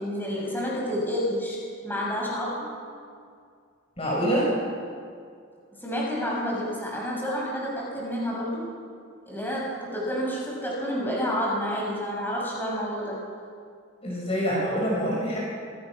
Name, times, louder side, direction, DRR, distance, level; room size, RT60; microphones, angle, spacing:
voice 1, 0.0-1.6 1.8-2.7 5.8-8.7 9.3-13.2, equal, 10° left, -4 dB, 7.0 m, -29 dB
voice 2, 4.0-4.5 14.0-15.4, equal, 30° left, -4 dB, 5.6 m, -25 dB
26.5 x 19.0 x 6.2 m, 2.2 s
head